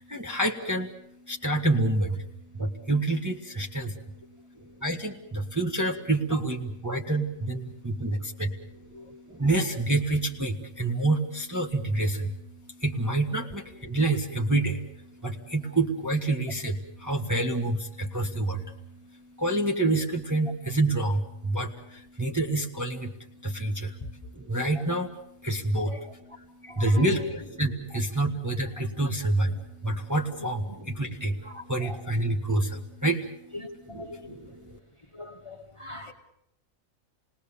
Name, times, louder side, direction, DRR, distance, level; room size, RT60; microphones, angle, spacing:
voice 1, 0.0-34.8, right 2 dB, 10° right, 0 dB, 1.5 m, -28 dB
voice 2, 26.6-27.0 31.4-32.0 33.5-34.4 35.1-36.1, left 2 dB, 20° left, 4 dB, 1.6 m, -41 dB
28.0 x 19.5 x 7.0 m, 0.76 s
omnidirectional pair, 1.5 m